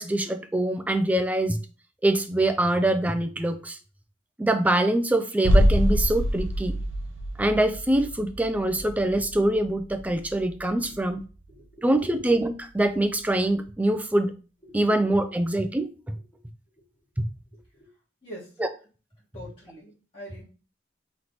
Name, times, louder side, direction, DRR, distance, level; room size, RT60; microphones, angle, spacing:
voice 1, 0.0-1.6 2.0-3.8 4.4-6.8 7.4-11.2 11.8-14.3 14.7-15.9 17.2-17.3 18.6-18.7, right 1 dB, 10° right, 9 dB, 0.3 m, -24 dB
sound 1, 5.4-11.2 11.4-11.5, equal, 90° right, 0.6 m, -26 dB
voice 2, 11.5-12.2 14.6-14.8 16.1-16.2 16.8-16.9 17.7-17.9 18.2-18.6 19.3-20.4, equal, 30° left, -8 dB, 1.3 m, -44 dB
3.2 x 3.0 x 3.9 m, 0.36 s
head